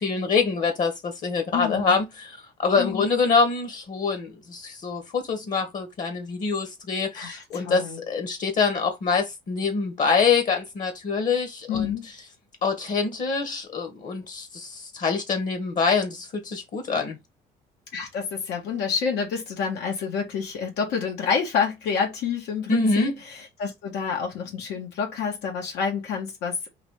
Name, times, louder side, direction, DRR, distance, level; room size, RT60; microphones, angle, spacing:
voice 1, 0.0-12.0 12.6-17.2 22.7-23.1, left 4 dB, 50° left, 1.3 m, -25 dB
voice 2, 1.5-2.0 2.8-3.1 7.1-8.0 11.7-12.1 17.9-26.7, left 6 dB, 85° left, 1.7 m, -28 dB
3.9 x 2.8 x 4.8 m
cardioid pair, 110°, 17 cm